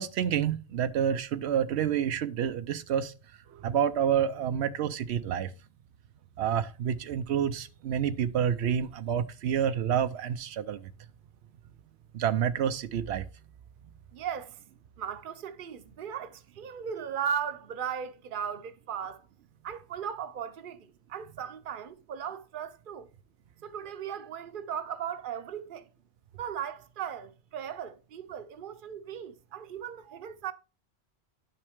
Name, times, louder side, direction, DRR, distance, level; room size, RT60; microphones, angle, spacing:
voice 1, 0.0-3.1 3.6-5.5 6.4-10.8 12.1-13.3, right 9 dB, 85° right, 0.9 m, -28 dB
voice 2, 14.1-14.6 15.0-19.2 19.6-23.1 23.6-25.8 26.4-30.5, right 8 dB, 55° right, 0.8 m, -37 dB
10.5 x 5.8 x 3.5 m
omnidirectional pair, 1.1 m